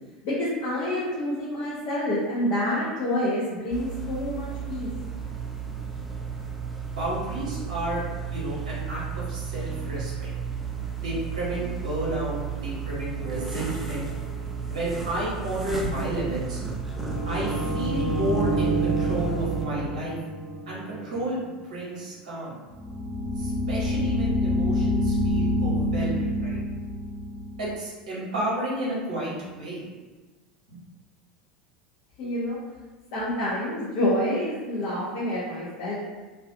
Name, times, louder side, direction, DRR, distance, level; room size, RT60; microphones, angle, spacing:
voice 1, 0.2-4.9 32.2-32.6 33.1-35.9, left 1 dB, 45° left, -8 dB, 0.6 m, -27 dB
sound 1, 3.7-19.7, right 6 dB, 5° right, 0.4 m, -33 dB
voice 2, 6.9-10.3 11.0-14.1 14.7-16.6 17.2-20.1 20.7-22.6 23.4-26.6 27.6-29.8 30.7-30.8, right 1 dB, 65° right, -6 dB, 0.8 m, -32 dB
sound 2, 13.2-14.6 16.9-21.3 22.7-27.7, equal, 30° left, 1.1 m, -28 dB
2.3 x 2.3 x 2.5 m, 1.3 s
figure-of-eight pair, 75°, 4 cm